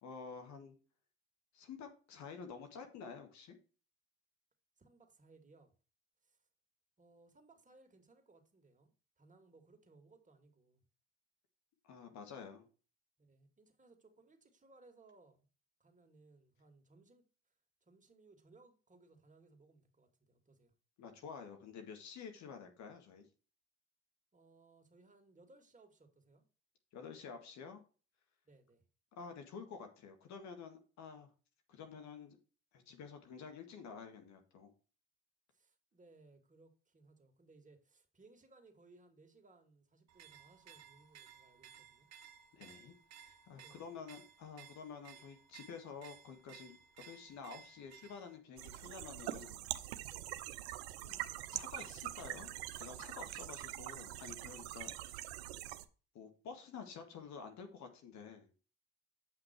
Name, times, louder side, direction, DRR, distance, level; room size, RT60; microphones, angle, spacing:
voice 1, 0.0-0.8 1.5-3.6 11.8-12.7 21.0-23.3 26.9-27.8 29.1-31.3 31.7-32.4 32.7-34.7 42.5-42.9 43.2-46.8 47.0-49.6 51.0-51.2 51.5-55.3 56.1-58.5, left 6 dB, 65° left, 1.8 m, -50 dB
voice 2, 4.8-5.7 6.2-6.4 7.0-10.8 13.2-15.5 15.8-17.2 17.8-20.7 24.3-26.4 28.4-28.8 35.5-42.1 43.6-44.0 50.1-50.5, right 3 dB, 25° right, 2.4 m, -64 dB
sound 1, 40.1-48.4, right 8 dB, 55° right, 1.2 m, -58 dB
sound 2, 48.6-55.9, right 14 dB, 80° right, 0.7 m, -44 dB
8.1 x 5.7 x 4.5 m
hypercardioid pair, 55°, 31 cm